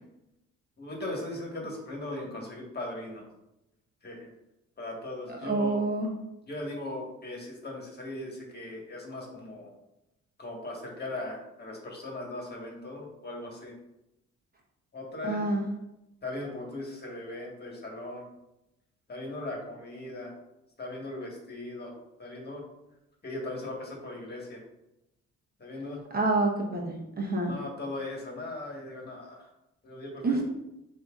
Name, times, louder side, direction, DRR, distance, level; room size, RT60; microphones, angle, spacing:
voice 1, 0.8-3.2 4.0-4.3 4.8-5.9 6.5-9.7 10.4-13.7 14.9-15.4 16.2-18.2 19.1-20.3 20.8-21.9 22.2-22.6 23.2-24.6 25.6-26.0 27.5-29.5 29.8-30.4, left 2 dB, 35° left, -1 dB, 1.5 m, -38 dB
voice 2, 5.3-6.1 15.2-15.7 26.1-27.6 30.2-30.4, right 2 dB, 30° right, -1 dB, 0.9 m, -28 dB
7.6 x 2.7 x 2.4 m, 0.89 s
cardioid pair, 90°, 30 cm